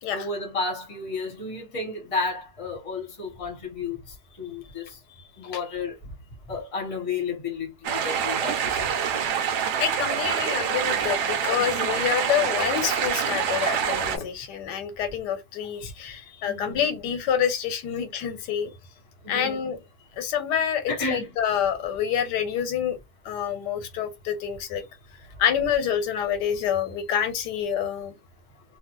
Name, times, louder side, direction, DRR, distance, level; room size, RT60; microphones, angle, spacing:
voice 1, 0.1-4.0 4.4-4.9 5.4-5.9 6.5-9.4 16.4-16.8 19.2-19.6 20.9-21.3, left 3 dB, 25° left, 1.0 m, -32 dB
sound 1, 7.8-14.2, right 8 dB, 80° right, 1.1 m, -26 dB
voice 2, 9.8-18.7 19.3-19.8 20.2-23.0 23.2-24.8 25.4-28.1, left 8 dB, 85° left, 1.3 m, -27 dB
2.6 x 2.4 x 2.9 m
omnidirectional pair, 1.8 m